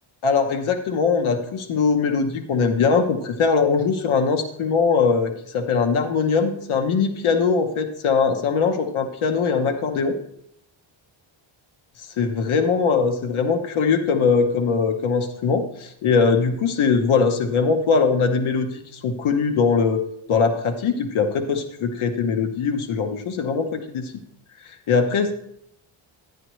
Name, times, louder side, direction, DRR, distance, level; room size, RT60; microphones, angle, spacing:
voice 1, 0.2-10.2 12.2-20.0 20.3-24.1 24.6-25.4, left 5 dB, 80° left, 6 dB, 1.1 m, -21 dB
11.0 x 10.0 x 3.1 m, 0.72 s
wide cardioid pair, 140°, 48 cm